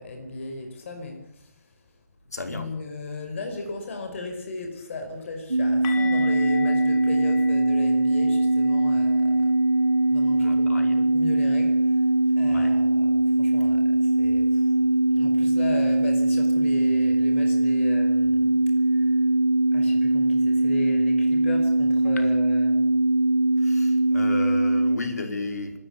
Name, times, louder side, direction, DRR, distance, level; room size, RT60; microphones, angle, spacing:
voice 1, 0.0-1.9 2.5-9.6 10.1-19.3 19.7-22.8, left 3 dB, 50° left, 5 dB, 5.2 m, -37 dB
voice 2, 2.3-2.6 10.3-11.0 12.5-12.8 22.1-22.4 23.6-25.8, left 2 dB, 70° left, 5 dB, 5.1 m, -34 dB
sound 1, 5.5-25.0, right 2 dB, 85° right, 1.2 m, -21 dB
sound 2, 5.8-11.6 11.9-12.1 12.5-12.6 15.9-16.0, left 7 dB, 25° left, 2.6 m, -40 dB
27.5 x 13.5 x 8.9 m, 0.81 s
figure-of-eight pair, 135°, 9 cm